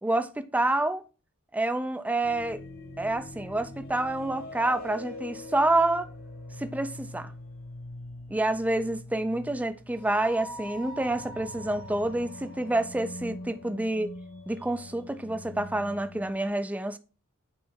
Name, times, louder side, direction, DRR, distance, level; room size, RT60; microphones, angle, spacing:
voice 1, 0.0-1.0 1.5-2.6 3.0-6.1 6.6-7.3 8.3-14.1 14.5-17.0, right 2 dB, 5° right, 0.4 m, -28 dB
sound 1, 2.2-16.5, left 1 dB, 45° left, 1.3 m, -43 dB
8.6 x 3.2 x 3.7 m
head